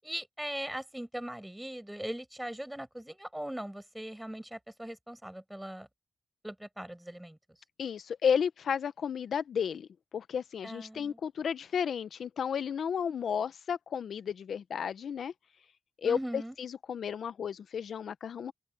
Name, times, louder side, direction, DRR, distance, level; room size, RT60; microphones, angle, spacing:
voice 1, 0.0-5.9 6.4-7.4 10.6-11.2 16.0-16.6, right 1 dB, 10° right, 6.5 m, -40 dB
voice 2, 7.8-9.9 10.1-15.3 16.0-18.5, left 7 dB, 85° left, 0.8 m, -33 dB
open air
cardioid pair, 45°, 0 cm